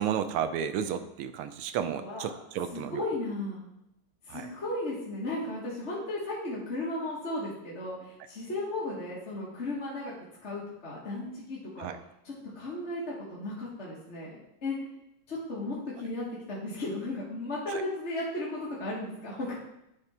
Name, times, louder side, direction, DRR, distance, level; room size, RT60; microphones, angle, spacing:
voice 1, 0.0-3.1 4.3-4.5 11.8-12.0 17.7-17.8, right 8 dB, 85° right, 10 dB, 1.5 m, -32 dB
voice 2, 2.0-2.3 2.7-3.6 4.3-10.1 10.4-11.9 12.2-14.8 15.3-19.5, left 2 dB, 35° left, -6 dB, 1.6 m, -35 dB
10.5 x 3.6 x 4.3 m, 0.84 s
omnidirectional pair, 2.4 m